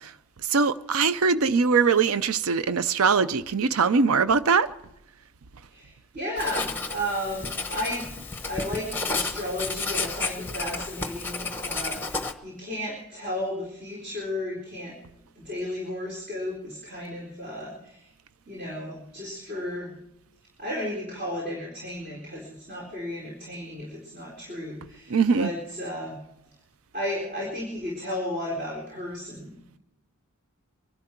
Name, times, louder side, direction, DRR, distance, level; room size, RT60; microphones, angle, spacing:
voice 1, 0.4-4.7 25.1-25.5, right 5 dB, 75° right, 0.6 m, -22 dB
voice 2, 5.7-8.1 8.5-14.9 15.4-18.1 18.5-19.9 20.6-26.2 26.9-29.8, left 1 dB, 40° right, 4.1 m, -34 dB
Writing, 6.4-12.3, left 3 dB, 10° left, 1.0 m, -32 dB
24.0 x 11.5 x 4.5 m
head